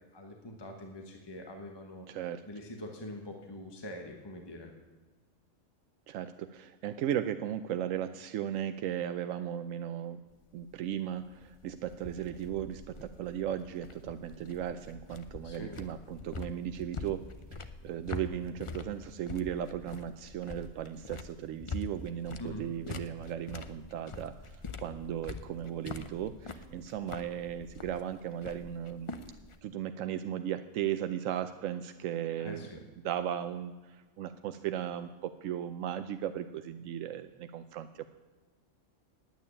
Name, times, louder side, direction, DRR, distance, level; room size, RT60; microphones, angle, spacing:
voice 1, 0.0-2.1 2.4-4.7 15.4-15.8 22.4-22.7 32.4-32.8, left 1 dB, 20° left, 3 dB, 1.2 m, -44 dB
voice 2, 2.1-2.4 6.1-10.2 10.5-29.1 29.6-32.7 33.0-38.1, right 10 dB, 90° right, 9 dB, 1.0 m, -36 dB
sound 1, 10.3-29.6, left 4 dB, 35° left, 0.5 m, -45 dB
9.3 x 9.0 x 9.8 m, 1.3 s
omnidirectional pair, 1.3 m